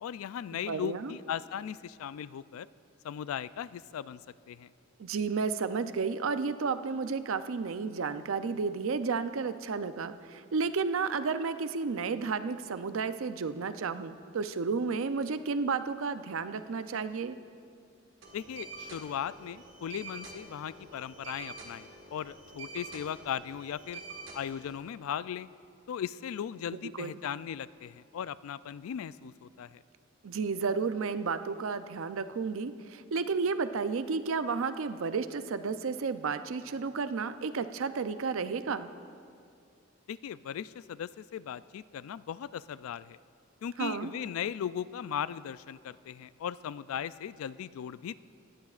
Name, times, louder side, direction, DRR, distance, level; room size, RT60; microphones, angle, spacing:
voice 1, 0.0-2.7 3.0-4.2 4.5-4.7 18.3-24.0 24.3-25.5 25.9-29.8 40.1-43.2 43.6-48.2, left 9 dB, 85° left, 18 dB, 0.3 m, -38 dB
voice 2, 0.7-1.1 5.0-17.4 27.0-27.1 30.2-38.9 43.8-44.1, right 5 dB, 75° right, 11 dB, 0.5 m, -32 dB
sound 1, 18.2-24.8, right 3 dB, 60° right, 1.7 m, -47 dB
18.5 x 14.5 x 2.4 m, 2.4 s
head